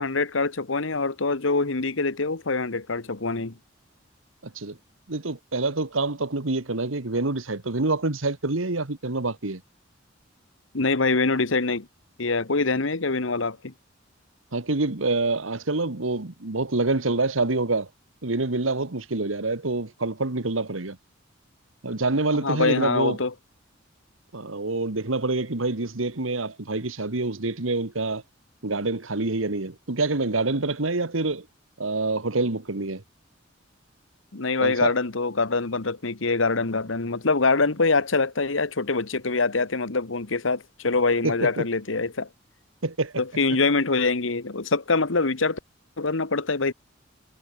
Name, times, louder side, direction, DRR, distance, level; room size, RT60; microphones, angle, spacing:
voice 1, 0.0-3.5 10.7-11.9 12.2-13.7 22.4-23.3 34.3-42.3 43.2-45.6 46.0-46.7, left 3 dB, 80° left, 1.4 m, -24 dB
voice 2, 5.1-9.6 14.5-17.9 18.2-21.0 21.8-23.2 24.3-28.2 28.6-31.4 31.8-33.0 34.6-34.9 41.2-41.6 42.8-43.1, right 3 dB, 90° right, 1.7 m, -26 dB
head